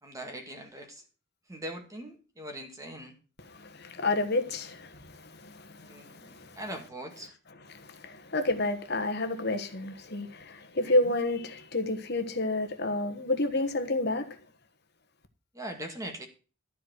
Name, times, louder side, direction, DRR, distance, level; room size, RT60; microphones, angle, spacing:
voice 1, 0.0-1.0 1.5-3.2 5.9-7.3 10.8-11.2 15.5-16.3, right 1 dB, 15° right, 2.1 m, -41 dB
voice 2, 3.5-6.6 7.7-14.4, left 2 dB, 50° left, 1.4 m, -30 dB
13.0 x 4.6 x 8.0 m
head